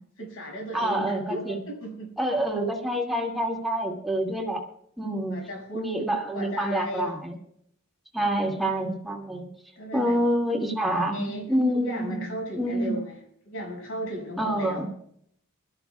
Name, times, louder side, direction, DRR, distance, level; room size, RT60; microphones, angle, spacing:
voice 1, 0.2-2.1 5.3-7.1 9.8-10.2 10.9-13.1 13.4-14.9, equal, 65° left, 1 dB, 6.6 m, -35 dB
voice 2, 0.7-1.6 2.2-4.6 5.0-5.4 5.7-7.3 8.1-9.5 9.9-12.2 12.6-13.0 14.4-14.9, right 1 dB, ahead, -1 dB, 2.4 m, -27 dB
24.0 x 13.5 x 2.4 m, 0.67 s
head